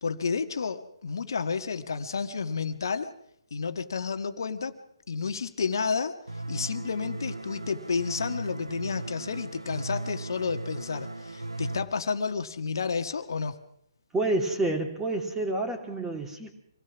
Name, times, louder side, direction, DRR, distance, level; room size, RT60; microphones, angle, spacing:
voice 1, 0.0-3.1 3.5-4.8 5.1-6.2 6.5-13.6, left 5 dB, 55° left, 9 dB, 1.6 m, -31 dB
sound 1, 6.3-11.8, right 2 dB, 80° right, 1.5 m, -37 dB
voice 2, 14.1-16.6, right 2 dB, 10° right, 3 dB, 2.9 m, -29 dB
26.0 x 18.0 x 6.1 m, 0.74 s
figure-of-eight pair, 135°, 2 cm